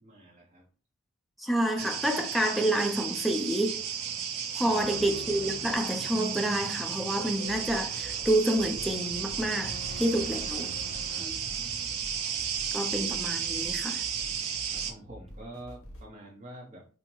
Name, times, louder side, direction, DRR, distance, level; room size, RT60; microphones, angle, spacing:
voice 1, 0.0-0.7 4.6-4.8 11.0-11.4 14.7-16.9, right 1 dB, 35° right, 0.7 m, -47 dB
voice 2, 1.4-3.8 4.5-10.7 11.2-11.3 12.7-14.1, right 1 dB, ahead, 0.4 m, -28 dB
sound 1, 1.8-14.9, right 7 dB, 75° right, 0.6 m, -33 dB
sound 2, 4.8-11.2, equal, 55° left, 1.7 m, -48 dB
sound 3, 7.4-16.1, equal, 75° left, 1.4 m, -48 dB
5.4 x 2.1 x 3.0 m
head